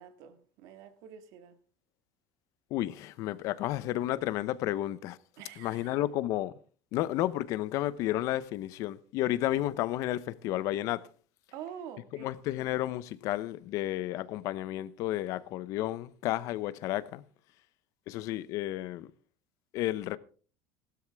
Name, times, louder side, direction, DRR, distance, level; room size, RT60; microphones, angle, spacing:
voice 1, 0.0-1.6 5.4-6.0 9.5-9.7 11.5-12.3, right 9 dB, 60° right, 1.8 m, -46 dB
voice 2, 2.7-5.2 5.6-6.5 6.9-11.0 12.1-17.2 18.1-19.1 19.7-20.2, left 14 dB, 50° left, 0.8 m, -32 dB
15.5 x 12.5 x 3.5 m
cardioid pair, 160°, 7 cm